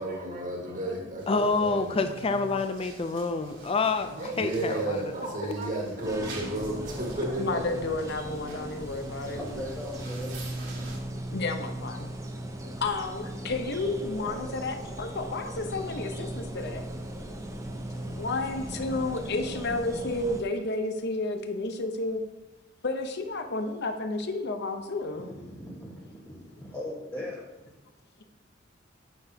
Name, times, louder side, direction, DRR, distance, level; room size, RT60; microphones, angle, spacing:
voice 1, 0.0-2.0 2.3-2.4 3.4-3.7 4.2-7.8 8.7-9.6, right 2 dB, 45° right, 0 dB, 1.7 m, -33 dB
sound 1, 1.2-11.0, right 3 dB, 70° right, 1.9 m, -48 dB
voice 2, 1.3-5.0 5.4-5.5, left 3 dB, 30° left, 8 dB, 0.4 m, -27 dB
sound 2, 6.0-20.4, right 1 dB, 15° right, 0.8 m, -38 dB
voice 3, 7.4-9.4 11.3-12.1 12.6-16.9 18.1-22.2 22.8-25.3, left 2 dB, 60° left, 6 dB, 0.8 m, -31 dB
voice 4, 9.6-10.3 25.2-27.4, left 1 dB, 10° left, -5 dB, 1.2 m, -39 dB
9.5 x 6.9 x 2.8 m, 1.1 s
head